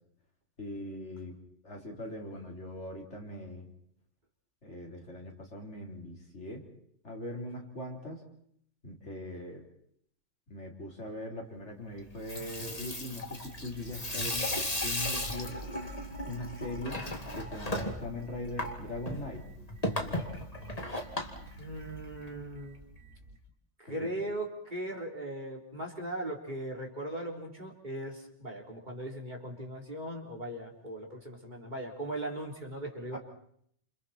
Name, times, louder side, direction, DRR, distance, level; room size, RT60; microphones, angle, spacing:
voice 1, 0.6-1.4 1.6-3.7 4.6-6.7 7.0-8.2 8.8-9.6 10.5-15.6 16.2-17.0 17.4-19.4 23.9-24.1 33.1-33.2, left 1 dB, 80° left, 0 dB, 4.6 m, -41 dB
Water tap faucet / Sink (filling or washing), 12.1-22.3, left 1 dB, 35° left, 2.7 m, -36 dB
sound 1, 13.4-23.4, right 3 dB, 85° right, 2.3 m, -50 dB
voice 2, 21.6-22.8 23.8-33.2, right 1 dB, 40° right, 0 dB, 4.1 m, -39 dB
30.0 x 28.0 x 4.5 m, 0.67 s
omnidirectional pair, 1.2 m